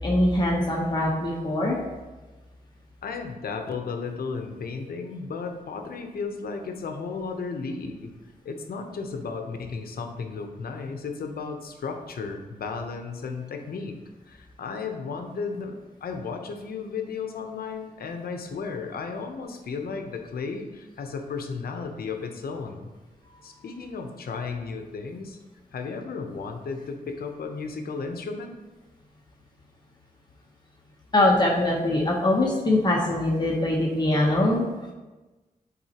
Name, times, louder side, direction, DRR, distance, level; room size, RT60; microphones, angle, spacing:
voice 1, 0.0-1.8 31.1-34.6, left 1 dB, 30° left, -3 dB, 0.9 m, -22 dB
voice 2, 3.0-8.1 8.4-14.0 14.3-22.9 23.4-25.4 25.7-28.6, left 4 dB, 80° left, 5 dB, 0.8 m, -34 dB
10.5 x 4.2 x 2.9 m, 1.2 s
wide cardioid pair, 140°, 15 cm